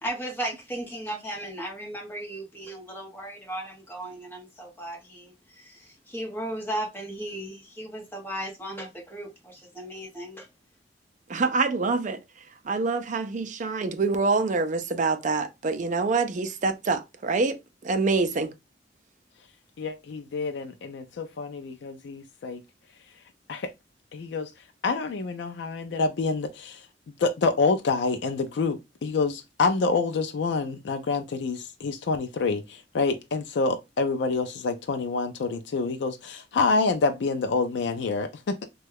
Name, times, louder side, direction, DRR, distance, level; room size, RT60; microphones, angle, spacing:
voice 1, 0.0-10.5, right 1 dB, 10° left, 1.3 m, -36 dB
voice 2, 11.3-12.2 12.6-17.6 17.8-18.5, right 4 dB, 45° right, 0.5 m, -25 dB
voice 3, 19.8-22.6 23.5-23.7 24.1-24.5 24.8-26.8 27.2-38.7, left 4 dB, 70° left, 0.4 m, -27 dB
3.1 x 2.3 x 3.3 m
head